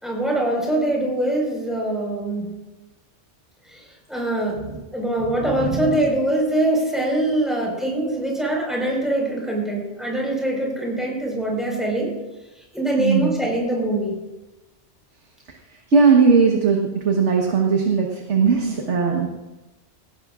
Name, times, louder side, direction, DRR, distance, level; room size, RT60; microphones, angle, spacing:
voice 1, 0.0-2.5 3.7-3.8 4.1-12.1 12.7-14.2, right 1 dB, ahead, -2 dB, 4.8 m, -23 dB
voice 2, 13.0-13.3 15.9-19.3, right 5 dB, 70° right, 0 dB, 1.6 m, -18 dB
18.0 x 17.0 x 2.5 m, 1.0 s
omnidirectional pair, 1.2 m